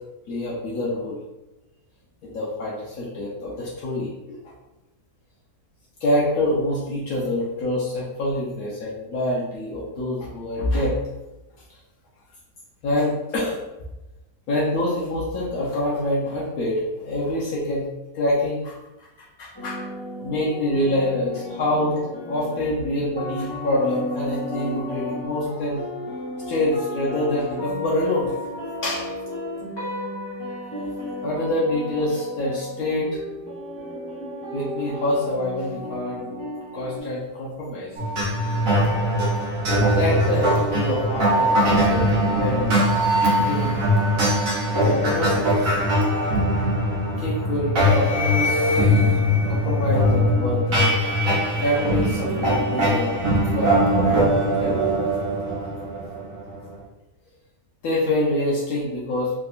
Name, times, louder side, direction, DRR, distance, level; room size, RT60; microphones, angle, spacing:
voice 1, 0.3-1.2 2.2-4.5 6.0-11.0 12.8-13.6 14.5-17.9 18.1-22.0 22.3-25.8 26.5-28.3 28.8-29.2 31.2-33.2 34.5-36.3 36.7-38.0 39.9-42.8 43.3-43.8 44.7-45.8 47.2-49.2 49.5-51.0 51.6-53.2 53.5-54.8 57.8-59.3, left 1 dB, 70° left, -6 dB, 1.1 m, -26 dB
sound 1, 19.5-37.0, left 1 dB, 20° left, 0.8 m, -33 dB
sound 2, 38.0-56.7, equal, 65° right, 1.2 m, -21 dB
3.6 x 2.7 x 2.4 m, 1.0 s
omnidirectional pair, 1.6 m